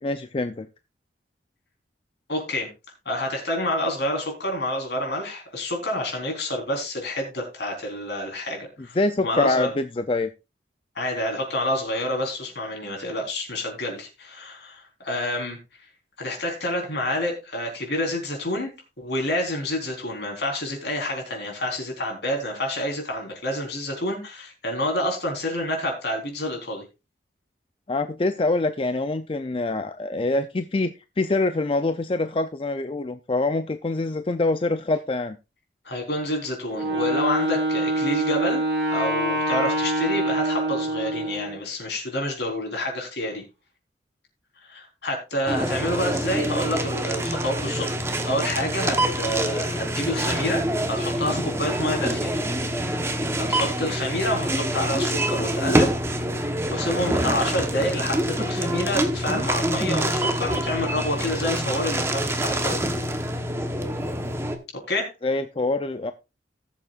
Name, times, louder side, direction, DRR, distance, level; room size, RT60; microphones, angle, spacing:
voice 1, 0.0-0.7 9.0-10.3 27.9-35.4 65.2-66.1, left 2 dB, 30° left, 9 dB, 0.5 m, -25 dB
voice 2, 2.3-2.7 3.1-9.7 11.0-15.6 16.2-26.8 35.8-38.6 38.9-43.4 44.6-47.9 48.2-52.3 53.4-55.9 56.4-62.8 64.9-65.1, left 1 dB, 65° left, 2 dB, 3.9 m, -28 dB
Wind instrument woodwind instrument, 36.7-41.6, right 1 dB, 65° right, 4.5 m, -25 dB
sound 1, 45.5-64.6, right 1 dB, 15° right, 1.0 m, -26 dB
18.5 x 7.3 x 2.4 m, 0.27 s
head